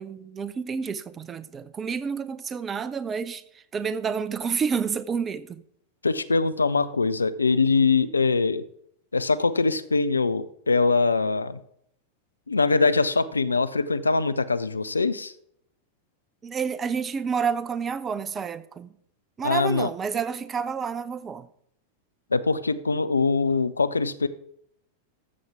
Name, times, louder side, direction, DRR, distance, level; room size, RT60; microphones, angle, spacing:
voice 1, 0.0-5.6 16.4-18.9 19.4-21.5, right 6 dB, 20° right, 0.6 m, -29 dB
voice 2, 6.0-8.6 9.1-11.6 12.5-15.3 19.4-19.9 22.3-24.3, left 4 dB, 80° left, 0.5 m, -23 dB
13.5 x 7.1 x 3.6 m
figure-of-eight pair, 90°, 0 cm